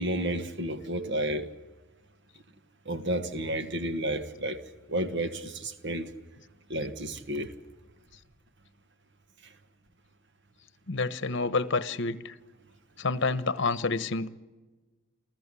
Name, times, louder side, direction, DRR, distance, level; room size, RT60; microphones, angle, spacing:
voice 1, 0.0-1.5 2.8-4.6 4.9-6.1 6.7-7.5, right 1 dB, 55° right, 1.4 m, -31 dB
voice 2, 10.9-12.3 13.0-14.3, left 3 dB, 60° left, 1.0 m, -28 dB
28.0 x 15.0 x 8.4 m
head